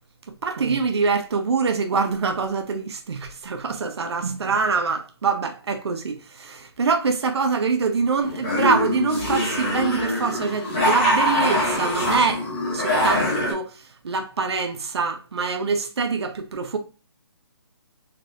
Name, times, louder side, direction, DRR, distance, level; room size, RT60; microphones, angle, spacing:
voice 1, 0.4-16.8, right 5 dB, 70° right, 0.6 m, -25 dB
sound 1, 8.2-13.5, left 1 dB, 15° left, 0.9 m, -23 dB
3.5 x 3.3 x 2.4 m
hypercardioid pair, 175°, 14 cm